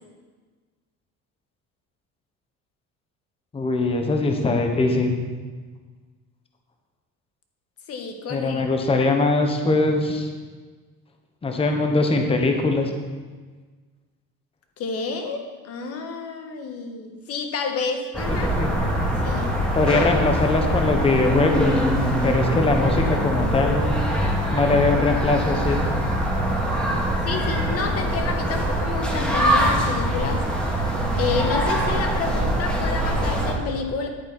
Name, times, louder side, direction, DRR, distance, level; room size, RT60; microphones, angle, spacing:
voice 1, 3.5-5.2 8.3-10.3 11.4-12.9 18.3-18.7 19.7-21.9 22.2-24.1 24.5-25.8, left 3 dB, 20° left, 4 dB, 1.0 m, -21 dB
voice 2, 7.9-8.6 14.8-18.5 19.2-19.5 27.2-30.4 31.2-34.1, left 5 dB, 50° left, 4 dB, 1.5 m, -29 dB
sound 1, 18.1-33.5, right 1 dB, 5° left, 2.1 m, -23 dB
10.5 x 9.0 x 4.1 m, 1.4 s
cardioid pair, 140°, 30 cm